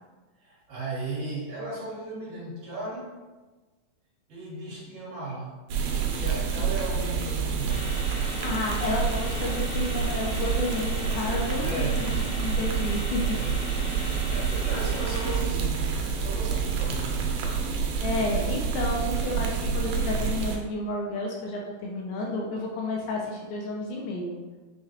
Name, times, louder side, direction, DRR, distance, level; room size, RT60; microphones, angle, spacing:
voice 1, 0.4-3.1 4.3-7.8 11.6-12.1 13.3-13.6 13.9-17.2 18.2-18.7, right 1 dB, 65° right, -7 dB, 2.5 m, -36 dB
sound 1, 5.7-20.6, right 6 dB, 85° right, 2.4 m, -28 dB
sound 2, 7.7-15.4, left 1 dB, 55° left, 1.5 m, -39 dB
voice 2, 8.4-13.4 18.0-24.4, left 2 dB, 80° left, -1 dB, 1.9 m, -31 dB
6.6 x 2.2 x 2.8 m, 1.2 s
omnidirectional pair, 4.0 m